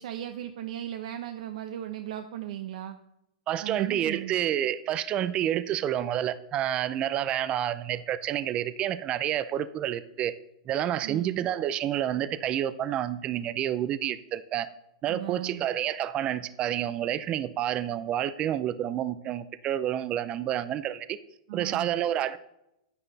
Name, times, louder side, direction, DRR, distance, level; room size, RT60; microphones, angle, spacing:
voice 1, 0.0-3.0 3.6-4.4 11.0-11.4 15.1-15.6 21.5-21.9, right 12 dB, 65° right, 7 dB, 0.8 m, -37 dB
voice 2, 3.5-10.3 10.7-14.7 15.0-21.2 21.5-22.4, right 11 dB, 25° right, 14 dB, 0.4 m, -29 dB
10.0 x 9.8 x 4.0 m, 0.84 s
hypercardioid pair, 150°, 4 cm